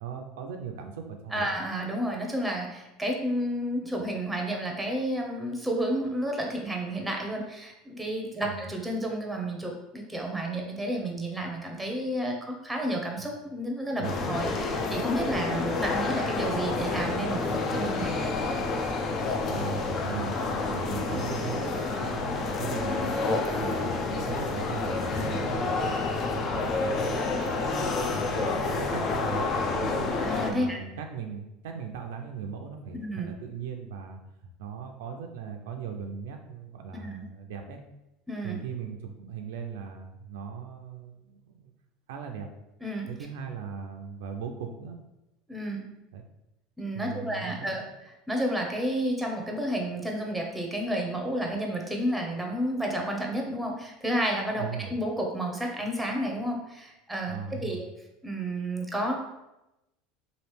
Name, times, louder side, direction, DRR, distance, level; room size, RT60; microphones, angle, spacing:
voice 1, 0.0-1.5 8.4-8.7 13.2-13.3 13.9-14.3 19.5-23.2 23.6-26.0 26.3-30.1 30.5-34.2 34.6-37.8 38.4-41.7 42.1-42.5 43.1-45.0 46.1-46.3 46.9-47.9 54.6-55.0 57.3-57.8, right 6 dB, 80° right, 4 dB, 0.4 m, -39 dB
voice 2, 1.3-18.1 30.2-30.8 32.9-33.3 36.9-37.2 38.3-38.6 42.8-43.1 45.5-45.9 46.8-47.8 48.3-57.4 57.6-57.8 58.2-59.1, right 1 dB, 5° right, 1 dB, 0.7 m, -31 dB
sound 1, 14.0-30.5, left 3 dB, 45° left, 0.5 m, -29 dB
3.1 x 2.5 x 3.2 m, 0.94 s
supercardioid pair, 100°, 0 cm